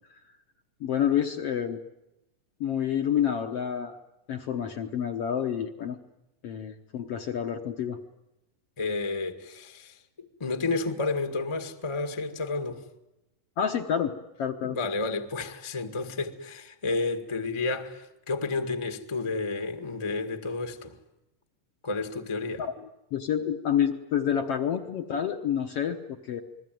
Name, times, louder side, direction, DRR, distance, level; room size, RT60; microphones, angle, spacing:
voice 1, 0.8-1.8 2.6-4.0 4.3-6.0 6.4-8.0 13.6-14.1 14.4-14.8 22.6-22.7 23.1-26.4, left 9 dB, 60° left, 1.6 m, -28 dB
voice 2, 8.8-12.8 14.6-21.0 21.8-22.7, left 3 dB, 20° left, 0.8 m, -31 dB
28.5 x 21.0 x 9.2 m
omnidirectional pair, 3.9 m